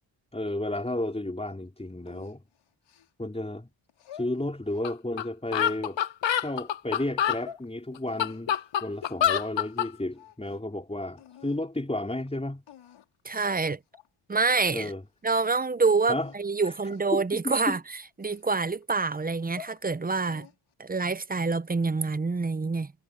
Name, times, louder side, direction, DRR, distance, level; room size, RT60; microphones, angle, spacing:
voice 1, 0.3-2.4 3.2-3.7 4.1-6.0 6.4-12.6 14.7-15.0 16.1-16.3 16.6-16.7 17.1-17.8, left 1 dB, 15° left, 4.6 m, -32 dB
sound 1, 2.1-3.4 3.9-5.0 5.5-6.6 7.1-7.7 8.1-9.8 10.1-10.7 11.2-11.6 12.3-12.4 12.7-13.2 13.6-13.7 13.9-14.1 14.5-14.9 15.2-15.5 16.0-16.4 16.9-17.2 17.6-18.8 19.3-19.8 20.2-20.7, left 9 dB, 90° left, 4.8 m, -50 dB
sound 2, 4.8-4.9 5.2-5.3 5.5-7.4 8.0-9.9, left 10 dB, 65° left, 1.1 m, -26 dB
voice 2, 13.2-13.8 14.3-14.9 15.2-17.8 18.2-20.5 20.8-22.9, right 4 dB, 20° right, 0.7 m, -26 dB
cardioid pair, 70°, 48 cm